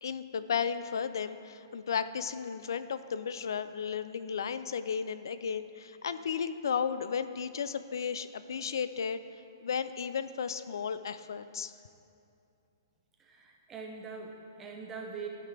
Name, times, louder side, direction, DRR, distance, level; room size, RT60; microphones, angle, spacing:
voice 1, 0.0-9.2 9.6-11.7, left 7 dB, 75° left, 13 dB, 0.3 m, -34 dB
voice 2, 13.2-15.3, right 5 dB, 10° right, 0 dB, 0.6 m, -42 dB
12.5 x 5.7 x 3.4 m, 2.6 s
hypercardioid pair, 175°, 2 cm